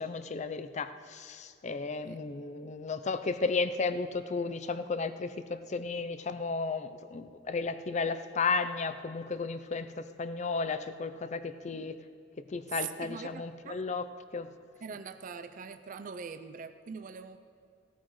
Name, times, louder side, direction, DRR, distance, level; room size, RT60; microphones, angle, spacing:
voice 1, 0.0-11.9 12.5-14.0 14.3-14.5, left 4 dB, 40° left, 12 dB, 0.5 m, -34 dB
voice 2, 12.7-13.9 14.8-17.4, right 6 dB, 45° right, 10 dB, 0.4 m, -42 dB
17.0 x 12.5 x 3.1 m, 2.3 s
head